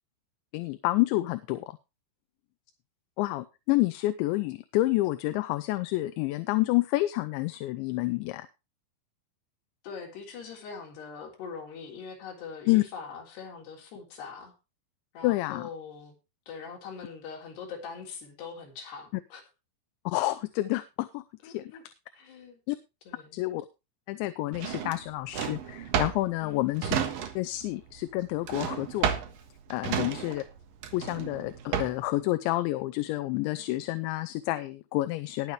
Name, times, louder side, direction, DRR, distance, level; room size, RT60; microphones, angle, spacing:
voice 1, 0.5-1.7 3.2-8.5 12.7-12.8 15.2-15.7 20.1-21.7 22.7-22.8 23.3-23.7 24.1-26.9 27.4-29.1 29.7-30.4 30.9-35.5, left 18 dB, 80° left, 11 dB, 3.0 m, -29 dB
voice 2, 9.8-14.5 15.1-16.2 16.5-19.4 21.4-21.8 22.1-22.6 23.1-23.4 26.4-26.8 29.9-30.3, left 5 dB, 65° left, 0 dB, 5.5 m, -42 dB
Drawer open or close, 24.5-27.6 27.9-32.2, right 8 dB, 65° right, 2.6 m, -32 dB
20.0 x 7.6 x 3.3 m, 0.27 s
omnidirectional pair, 5.3 m